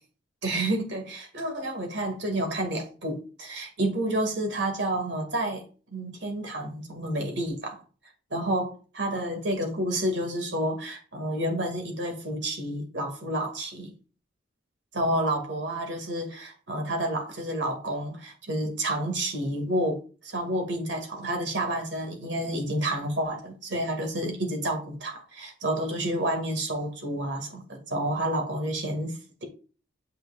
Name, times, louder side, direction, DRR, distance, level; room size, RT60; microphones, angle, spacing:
voice 1, 0.4-5.6 5.9-7.8 8.3-13.9 14.9-20.0 20.2-29.4, right 1 dB, 60° right, 2.0 m, -30 dB
7.7 x 6.2 x 2.4 m
head